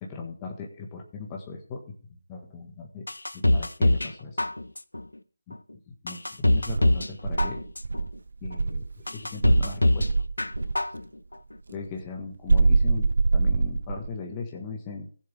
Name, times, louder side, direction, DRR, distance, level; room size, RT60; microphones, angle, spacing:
voice 1, 0.0-3.0 3.3-4.4 5.5-5.6 5.9-7.6 8.4-10.1 11.7-15.1, left 4 dB, 20° left, 1 dB, 1.4 m, -38 dB
sound 1, 3.1-4.1 4.4-5.0 5.5-5.6 6.1-7.1 7.4-8.0 8.5-8.6 9.1-10.1 10.4-11.0 11.3-11.4, left 1 dB, 85° left, 0.7 m, -23 dB
Insect, 6.7-8.9 9.4-10.8 12.5-14.2, right 3 dB, 60° right, 0.6 m, -24 dB
16.5 x 7.2 x 3.4 m, 0.43 s
figure-of-eight pair, 160°, 0 cm